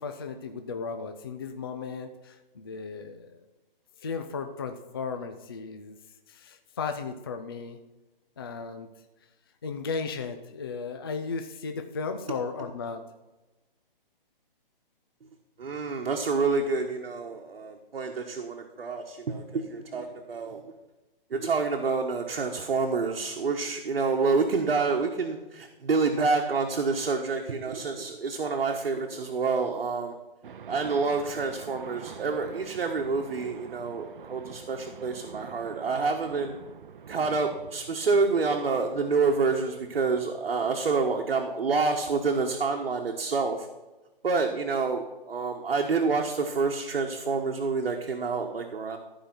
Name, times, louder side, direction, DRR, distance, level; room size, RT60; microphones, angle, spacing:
voice 1, 0.0-3.4 4.0-6.0 6.3-7.8 8.4-8.9 9.6-13.0, left 5 dB, 25° left, 6 dB, 0.4 m, -35 dB
voice 2, 15.6-20.7 21.3-30.1 30.7-36.6 37.1-43.7 44.2-49.0, right 4 dB, 80° right, 2 dB, 1.3 m, -28 dB
sound 1, 30.4-41.2, right 7 dB, 60° right, 0.7 m, -47 dB
13.5 x 5.1 x 5.9 m, 1.1 s
hypercardioid pair, 165°, 29 cm